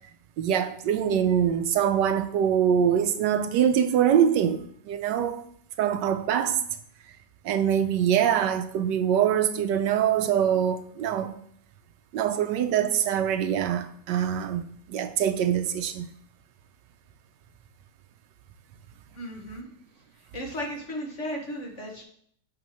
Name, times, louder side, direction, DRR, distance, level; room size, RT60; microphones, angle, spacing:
voice 1, 0.4-5.4 5.8-6.6 7.4-11.4 12.1-14.6 14.9-16.1, right 9 dB, 75° right, 1.2 m, -24 dB
voice 2, 19.1-19.7 20.3-22.0, equal, 45° left, 1.6 m, -35 dB
8.7 x 6.1 x 3.0 m
omnidirectional pair, 1.9 m